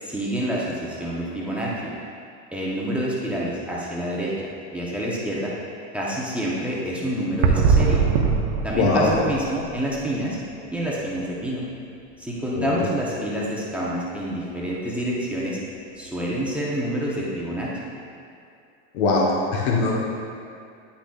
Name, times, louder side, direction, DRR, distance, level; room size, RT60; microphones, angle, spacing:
voice 1, 0.0-1.9 2.5-4.3 4.7-5.5 5.9-8.0 8.6-10.4 10.7-11.6 12.2-15.6 16.0-17.7, right 1 dB, 5° right, -7 dB, 0.6 m, -27 dB
sound 1, 7.4-10.5 10.7-10.9 11.4-11.5 16.1-16.2, right 5 dB, 70° right, 0.7 m, -22 dB
voice 2, 8.7-9.1 12.6-12.9 18.9-20.0, left 3 dB, 65° left, -2 dB, 1.1 m, -21 dB
9.9 x 5.9 x 2.3 m, 2.5 s
supercardioid pair, 160°, 36 cm